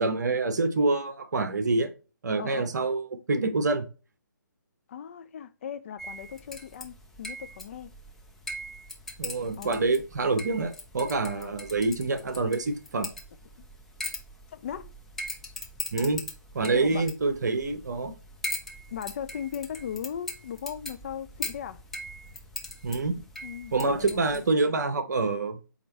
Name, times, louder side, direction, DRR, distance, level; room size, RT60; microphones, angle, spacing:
voice 1, 0.0-1.9 2.2-3.9 9.2-13.1 15.9-16.2 16.5-18.1 22.8-23.2 23.7-25.7, right 3 dB, 55° right, 1.0 m, -26 dB
voice 2, 4.9-7.9 9.6-9.8 11.3-11.6 14.5-14.9 16.7-17.0 18.9-21.8 23.4-24.4, left 8 dB, 40° left, 0.5 m, -38 dB
sound 1, 6.0-24.5, left 1 dB, 5° left, 0.7 m, -41 dB
8.5 x 3.0 x 4.2 m
figure-of-eight pair, 140°, 11 cm